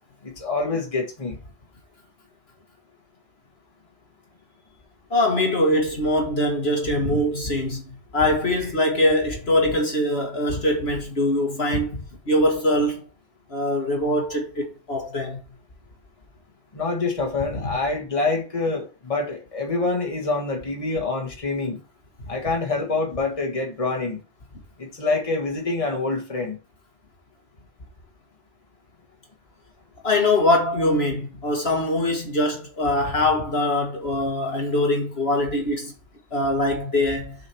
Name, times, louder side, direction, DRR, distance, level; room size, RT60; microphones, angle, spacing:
voice 1, 0.2-1.4 16.7-21.8 22.3-24.2 24.8-26.6, left 3 dB, 25° left, 1.7 m, -26 dB
voice 2, 5.1-7.8 8.1-13.1 13.5-15.4 30.0-35.9 36.3-37.3, left 1 dB, 55° left, 1.8 m, -22 dB
6.8 x 5.0 x 4.5 m
omnidirectional pair, 1.3 m